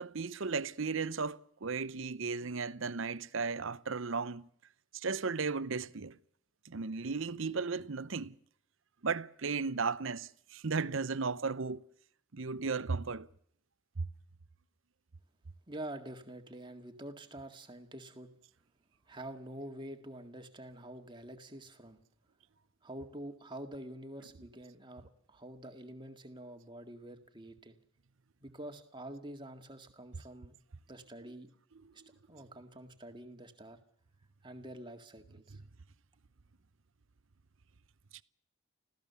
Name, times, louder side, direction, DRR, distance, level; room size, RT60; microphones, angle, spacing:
voice 1, 0.0-4.5 4.9-6.2 6.6-8.4 9.0-11.8 12.3-13.3 14.0-14.1 32.0-32.1 38.1-38.2, right 4 dB, 65° right, 0.7 m, -35 dB
voice 2, 15.7-18.3 19.1-22.0 22.8-27.7 28.4-30.5 30.9-31.5 32.3-33.8 34.4-35.6, right 1 dB, 20° right, 1.9 m, -47 dB
25.5 x 16.0 x 6.9 m
head